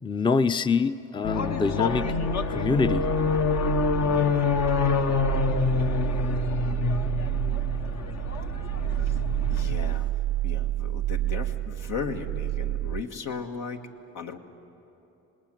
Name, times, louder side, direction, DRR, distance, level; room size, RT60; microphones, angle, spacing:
voice 1, 0.0-2.1 2.5-3.1, left 4 dB, 15° left, 12 dB, 0.6 m, -25 dB
sound 1, 1.2-10.0, left 5 dB, 60° left, 1.3 m, -27 dB
sound 2, 1.9-13.0, right 15 dB, 70° right, 0.5 m, -30 dB
voice 2, 9.5-10.1 10.4-13.8 14.1-14.4, left 6 dB, 80° left, 4 dB, 1.8 m, -36 dB
26.5 x 19.5 x 9.1 m, 2.9 s
cardioid pair, 90°, 30 cm